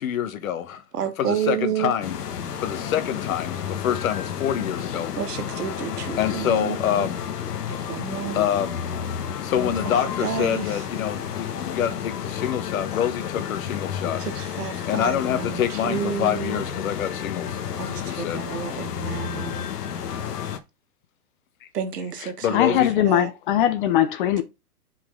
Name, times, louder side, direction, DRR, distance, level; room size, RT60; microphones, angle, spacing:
voice 1, 0.0-0.8 1.2-2.2 2.6-5.1 6.2-7.2 8.3-8.8 9.4-14.2 14.8-17.6 18.0-18.5 22.4-22.9, left 10 dB, 55° left, 1.4 m, -26 dB
voice 2, 1.0-1.9 5.2-7.1 7.7-8.4 9.6-10.7 14.2-16.6 17.8-19.7 21.7-23.3, right 8 dB, 70° right, 1.6 m, -30 dB
sound 1, 2.0-20.6, left 8 dB, 70° left, 1.3 m, -31 dB
voice 3, 22.2-24.4, left 12 dB, 35° left, 0.7 m, -21 dB
7.6 x 4.6 x 3.8 m
hypercardioid pair, 130°, 48 cm